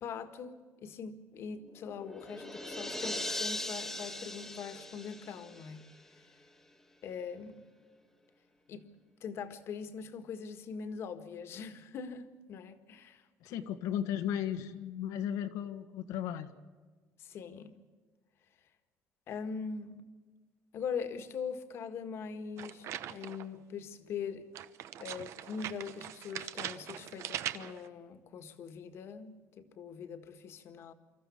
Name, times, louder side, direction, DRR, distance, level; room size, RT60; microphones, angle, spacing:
voice 1, 0.0-5.8 7.0-7.6 8.7-8.9 9.2-13.6 17.2-17.8 19.3-20.0 20.7-24.5 25.0-30.9, left 6 dB, 45° left, 1.7 m, -42 dB
sound 1, 1.6-6.2, left 1 dB, 5° left, 1.5 m, -40 dB
voice 2, 13.4-16.5, left 10 dB, 85° left, 1.6 m, -35 dB
sound 2, 22.6-23.5 24.5-27.9, right 11 dB, 55° right, 0.9 m, -41 dB
26.0 x 14.0 x 8.4 m
cardioid pair, 170°, 6 cm